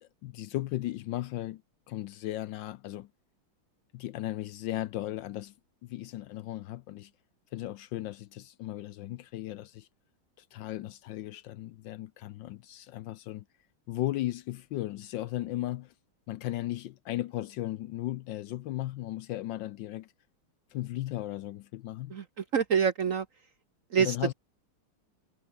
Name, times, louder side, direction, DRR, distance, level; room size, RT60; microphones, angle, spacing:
voice 1, 0.0-1.6 1.9-3.1 3.9-5.5 5.8-7.1 7.5-9.9 10.4-13.4 13.9-15.9 16.3-20.1 20.7-22.2 24.0-24.3, left 15 dB, 75° left, 1.2 m, -36 dB
voice 2, 22.1-23.3 23.9-24.3, right 7 dB, 55° right, 1.0 m, -27 dB
omnidirectional pair, 2.3 m